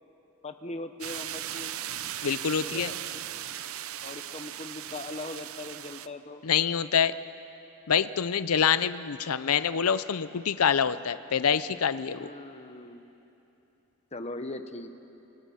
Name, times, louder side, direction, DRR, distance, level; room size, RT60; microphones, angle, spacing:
voice 1, 0.4-1.8 2.6-3.0 4.0-6.4 12.1-13.0 14.1-14.9, left 2 dB, 30° left, 8 dB, 1.1 m, -40 dB
sound 1, 1.0-6.1, right 11 dB, 75° right, 0.7 m, -37 dB
voice 2, 2.2-2.9 6.4-7.1 7.9-12.3, left 7 dB, 85° left, 14 dB, 0.6 m, -26 dB
29.0 x 27.0 x 5.7 m, 3.0 s
head